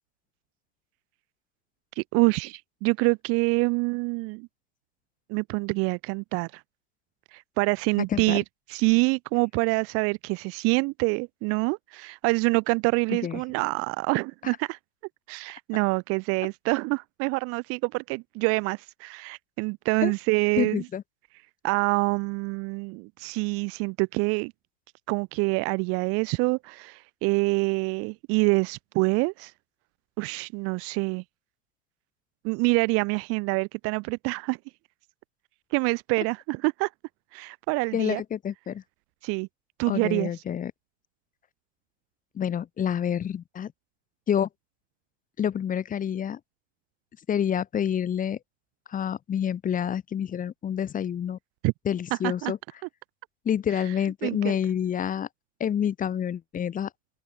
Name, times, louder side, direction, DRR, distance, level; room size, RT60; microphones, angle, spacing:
voice 1, 2.0-4.5 5.3-6.6 7.3-8.4 8.7-14.8 15.3-20.8 21.6-24.5 25.1-29.5 30.2-31.2 32.4-34.6 35.7-36.9 37.3-38.2 39.2-39.5 39.8-40.3 51.6-51.7 52.2-52.5 54.2-54.6, right 30 dB, 35° right, 1.0 m, -26 dB
voice 2, 20.6-21.0 37.9-38.8 39.9-40.7 42.4-43.7 44.3-44.5 45.4-46.4 47.3-48.4 48.9-51.4 51.9-52.6 53.5-55.3 55.6-56.9, left 9 dB, 20° left, 2.0 m, -28 dB
open air
figure-of-eight pair, 100°, 38 cm